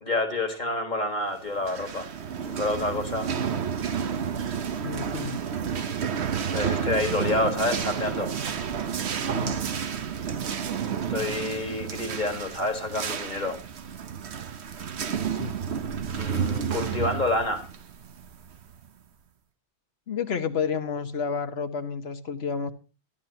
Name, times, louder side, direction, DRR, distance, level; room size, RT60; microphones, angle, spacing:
voice 1, 0.0-2.1 2.5-3.3 6.5-8.3 11.1-13.6 16.2-17.7, left 2 dB, 45° left, 1.7 m, -28 dB
Person Pushing Cart down hallway, 1.5-18.9, right 7 dB, 80° right, 1.2 m, -31 dB
voice 2, 4.8-5.4 9.3-9.6 15.3-15.5 20.1-22.7, left 6 dB, 70° left, 1.2 m, -30 dB
12.0 x 12.0 x 2.8 m
omnidirectional pair, 1.1 m